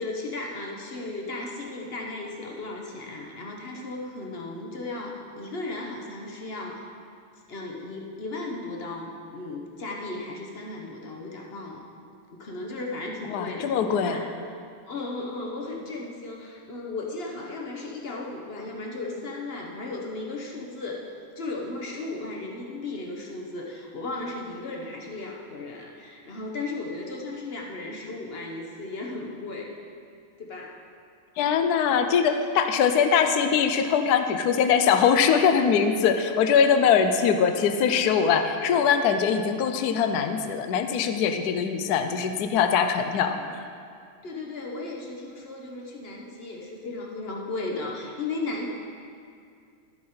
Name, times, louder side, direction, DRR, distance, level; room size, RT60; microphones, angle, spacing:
voice 1, 0.0-6.9 7.5-11.8 12.3-14.3 14.8-21.1 21.4-29.8 30.4-30.8 43.3-43.6 44.2-48.7, left 2 dB, 50° left, 0 dB, 0.7 m, -35 dB
voice 2, 13.3-14.2 31.4-43.4, left 7 dB, 85° left, 7 dB, 0.8 m, -22 dB
12.0 x 8.5 x 4.3 m, 2.3 s
omnidirectional pair, 2.4 m